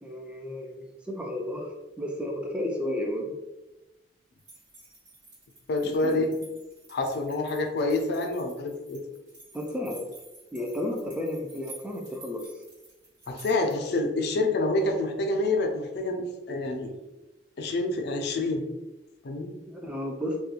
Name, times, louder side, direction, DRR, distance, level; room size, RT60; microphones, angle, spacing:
voice 1, 0.0-3.4 5.8-6.3 9.5-10.1 10.5-12.5 19.7-20.4, left 1 dB, 5° right, 1 dB, 0.3 m, -33 dB
sound 1, 4.4-14.0, right 2 dB, 80° right, 1.5 m, -51 dB
voice 2, 5.7-6.3 6.9-9.0 13.3-16.9 17.6-18.6 19.2-19.5, left 2 dB, 65° left, 4 dB, 0.4 m, -27 dB
2.4 x 2.2 x 2.8 m, 1.0 s
head